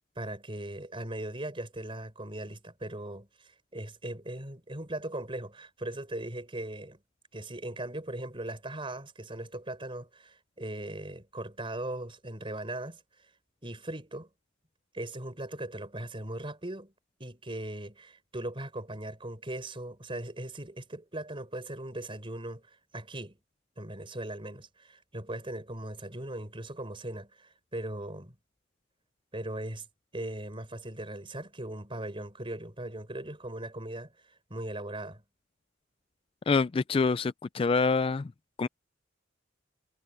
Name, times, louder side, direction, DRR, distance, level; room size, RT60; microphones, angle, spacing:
voice 1, 0.2-7.0 7.3-13.3 13.6-14.3 14.9-16.9 17.2-23.4 23.8-28.4 29.3-29.9 30.1-35.2, right 1 dB, 30° right, 5.2 m, -39 dB
voice 2, 36.5-38.3 38.6-38.7, left 4 dB, 30° left, 0.3 m, -26 dB
head